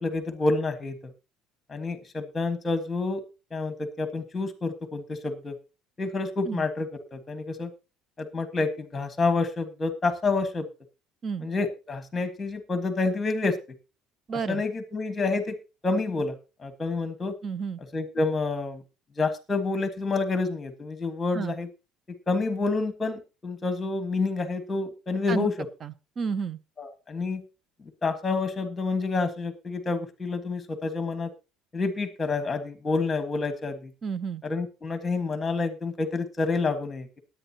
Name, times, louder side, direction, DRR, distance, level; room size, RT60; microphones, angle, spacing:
voice 1, 0.0-1.0 1.7-3.2 3.5-5.5 6.0-7.7 8.2-10.7 11.4-13.6 14.5-15.6 15.8-16.3 16.6-17.3 17.9-18.8 19.2-21.7 22.3-25.5 26.8-27.4 28.0-31.3 31.7-33.9 34.4-37.2, left 3 dB, 15° left, 9 dB, 1.5 m, -28 dB
voice 2, 14.3-14.6 17.4-17.8 21.3-21.5 25.3-25.5 25.8-26.6 34.0-34.4, right 6 dB, 25° right, 17 dB, 0.6 m, -31 dB
19.0 x 8.9 x 2.9 m, 0.30 s
cardioid pair, 170°, 0 cm